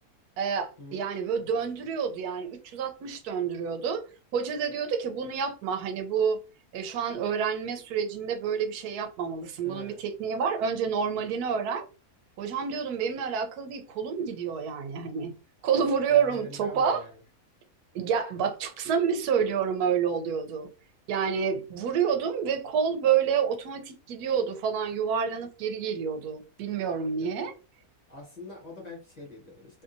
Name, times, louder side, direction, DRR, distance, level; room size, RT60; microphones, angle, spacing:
voice 1, 0.4-4.0 4.3-6.4 6.7-11.9 12.4-15.3 15.6-17.0 17.9-20.7 21.1-27.5, right 7 dB, 90° right, 1.1 m, -28 dB
voice 2, 9.6-10.0 16.1-17.2 27.2-27.5 28.1-29.8, left 2 dB, 35° left, 0.8 m, -44 dB
2.7 x 2.7 x 2.5 m
omnidirectional pair, 1.6 m